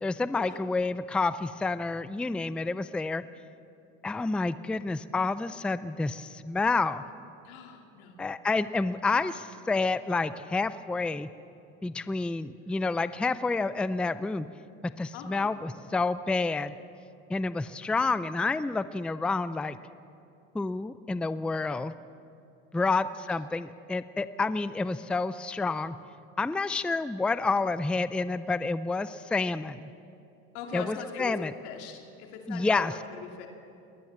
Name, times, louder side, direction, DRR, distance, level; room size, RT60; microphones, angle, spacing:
voice 1, 0.0-3.2 4.0-7.1 8.2-11.3 11.8-14.5 15.0-16.7 17.3-19.8 20.5-21.9 22.7-26.0 26.4-29.9 30.7-31.5 32.5-32.9, left 3 dB, 5° left, 14 dB, 0.4 m, -29 dB
voice 2, 7.4-8.2 15.1-15.5 22.7-23.0 30.5-33.5, left 7 dB, 85° left, 2 dB, 2.6 m, -41 dB
21.5 x 19.5 x 7.4 m, 2.6 s
cardioid pair, 120°, 32 cm